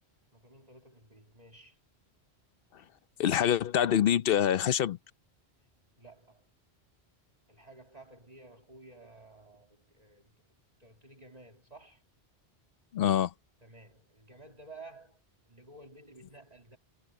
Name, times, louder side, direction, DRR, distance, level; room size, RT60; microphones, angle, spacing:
voice 1, 0.3-1.8 6.0-6.5 7.5-10.3 10.8-12.0 13.6-15.2 15.5-16.8, right 2 dB, 35° right, 2.3 m, -53 dB
voice 2, 3.2-5.0 12.9-13.3, left 10 dB, 65° left, 0.8 m, -25 dB
omnidirectional pair, 1.1 m